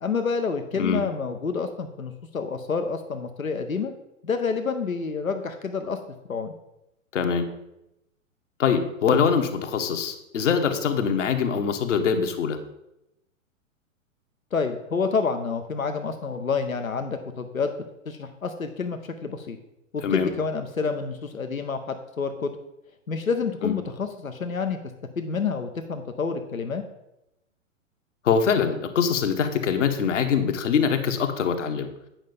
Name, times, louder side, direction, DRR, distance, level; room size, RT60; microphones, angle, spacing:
voice 1, 0.0-3.9 4.2-6.0 6.3-6.5 14.5-17.7 18.1-19.6 19.9-22.5 23.1-24.8 25.2-26.8, left 5 dB, 85° left, 7 dB, 0.9 m, -28 dB
voice 2, 7.1-7.5 8.6-12.6 20.0-20.3 23.6-23.7 28.2-31.9, left 6 dB, 65° left, 6 dB, 1.3 m, -23 dB
9.0 x 5.6 x 5.2 m, 0.88 s
figure-of-eight pair, 110°, 40 cm